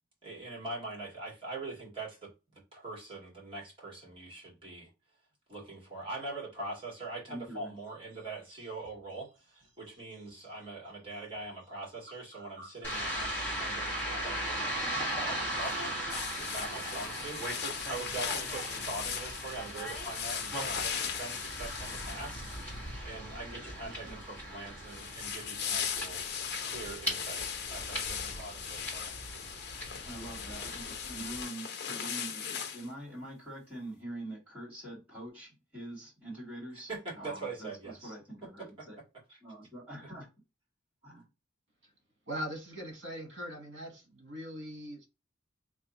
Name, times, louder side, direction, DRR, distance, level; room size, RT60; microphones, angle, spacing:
voice 1, 0.2-4.9 5.5-14.7 15.2-15.8 16.4-22.5 23.0-26.2 26.6-29.1 36.9-38.1 38.8-38.9, right 2 dB, 30° right, 1.8 m, -43 dB
voice 2, 7.3-7.7 23.8-24.2 30.1-39.0 39.4-40.3 41.0-41.3, right 1 dB, 10° right, 2.2 m, -44 dB
sound 1, 7.8-17.5, right 1 dB, 45° right, 1.0 m, -52 dB
sound 2, 12.8-31.4, right 1 dB, 10° left, 1.5 m, -39 dB
sound 3, 16.1-22.9 24.9-32.9, left 7 dB, 60° left, 0.6 m, -38 dB
voice 3, 42.3-45.1, equal, 65° right, 1.2 m, -41 dB
3.4 x 2.4 x 4.0 m
head